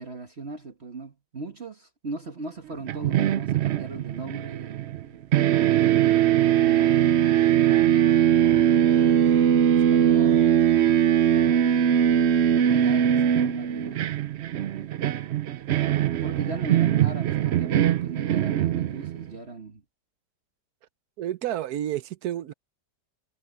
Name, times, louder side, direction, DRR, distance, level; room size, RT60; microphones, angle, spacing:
voice 1, 0.0-5.3 6.0-9.3 9.7-10.6 11.3-14.4 16.2-19.8, right 3 dB, 40° right, 1.8 m, -39 dB
sound 1, 2.9-5.1 5.3-19.3, right 10 dB, 85° right, 0.5 m, -21 dB
voice 2, 21.2-22.5, right 12 dB, 65° right, 1.1 m, -30 dB
omnidirectional pair, 1.9 m